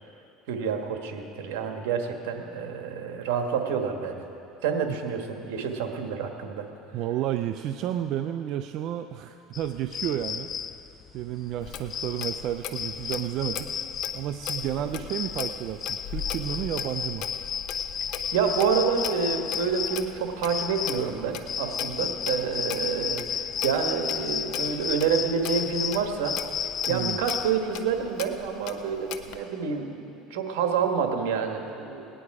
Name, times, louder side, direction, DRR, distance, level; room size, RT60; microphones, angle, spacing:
voice 1, 0.5-4.2 4.6-6.6 14.8-14.9 18.3-26.3 26.6-32.1, right 6 dB, 85° right, 4 dB, 1.4 m, -28 dB
voice 2, 6.9-10.5 11.1-13.8 14.1-17.3 26.9-27.2, right 11 dB, 55° right, 7 dB, 0.4 m, -31 dB
sound 1, 9.5-27.8, left 8 dB, 35° left, 0.4 m, -33 dB
Clock, 11.6-29.4, left 8 dB, 60° left, 0.8 m, -40 dB
19.0 x 10.0 x 4.8 m, 2.7 s
supercardioid pair, 115°, 0 cm